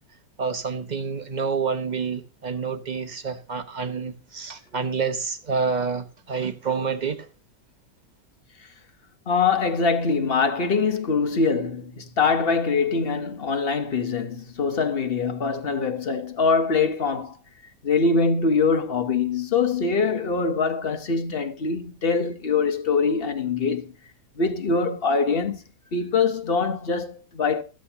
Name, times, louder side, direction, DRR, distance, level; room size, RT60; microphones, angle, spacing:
voice 1, 0.4-7.3, right 5 dB, 30° right, 1.0 m, -28 dB
voice 2, 9.3-17.4 17.8-23.9 24.4-25.6 25.9-27.6, left 4 dB, 40° left, 1.0 m, -23 dB
14.0 x 8.9 x 2.8 m
omnidirectional pair, 1.8 m